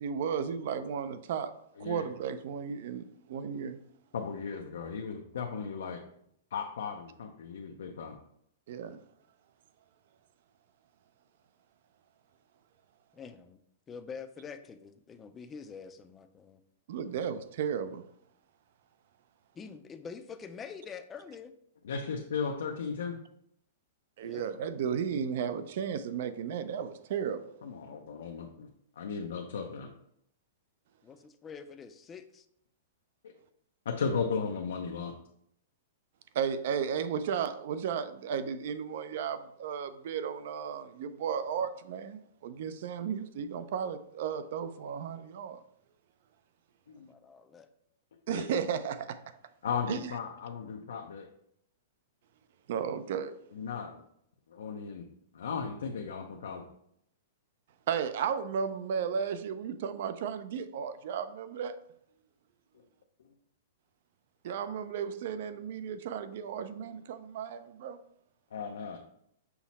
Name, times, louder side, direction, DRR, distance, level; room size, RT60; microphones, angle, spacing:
voice 1, 0.0-1.5 1.8-3.8 8.7-9.0 16.9-18.0 24.2-27.4 36.3-45.6 48.3-49.2 49.9-50.1 52.7-53.3 57.9-61.7 64.4-68.0, right 7 dB, 60° right, 0.3 m, -34 dB
voice 2, 4.1-6.0 6.5-8.2 21.8-23.2 27.6-28.7 29.0-29.9 33.2-33.3 33.9-35.1 46.9-47.1 48.3-48.4 49.6-51.3 53.5-54.0 54.5-55.1 55.3-56.6 68.5-69.0, left 5 dB, 85° left, 0.4 m, -36 dB
voice 3, 13.1-13.6 13.9-16.6 19.5-21.5 24.2-24.5 31.0-32.5 47.0-47.7, left 6 dB, 15° left, 0.3 m, -46 dB
5.7 x 2.0 x 4.0 m
hypercardioid pair, 150°, 0 cm